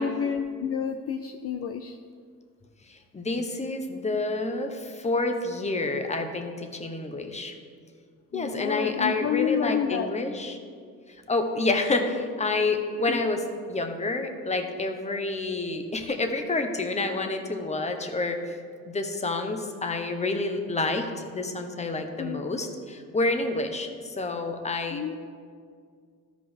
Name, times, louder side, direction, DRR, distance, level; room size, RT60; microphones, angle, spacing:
voice 1, 0.0-2.0 8.3-10.1 13.1-13.2 22.2-22.4 24.9-25.2, left 7 dB, 50° left, 6 dB, 0.5 m, -29 dB
voice 2, 2.9-7.5 8.3-10.6 11.3-13.4 13.7-18.4 18.9-25.0, left 3 dB, 20° left, 5 dB, 1.0 m, -28 dB
13.0 x 5.0 x 3.6 m, 2.1 s
cardioid pair, 90°, 30 cm